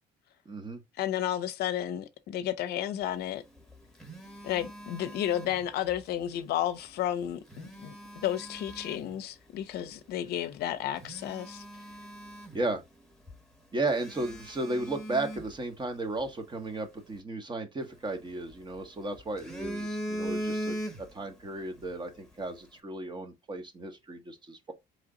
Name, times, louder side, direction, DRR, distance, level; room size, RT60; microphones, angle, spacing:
voice 1, 0.4-0.8 12.5-12.8 13.7-24.7, right 2 dB, 25° right, 1.1 m, -34 dB
voice 2, 1.0-3.4 4.4-7.9 8.2-11.6, left 11 dB, 70° left, 0.6 m, -32 dB
Telephone, 3.5-6.0 7.3-9.2 9.8-10.0 10.5-10.6 11.0-13.0 13.3-13.4 13.9-16.3 17.8-18.8 19.2-21.3 21.6-21.9, right 1 dB, 5° left, 1.1 m, -40 dB
3.9 x 3.3 x 3.7 m
cardioid pair, 110°, 17 cm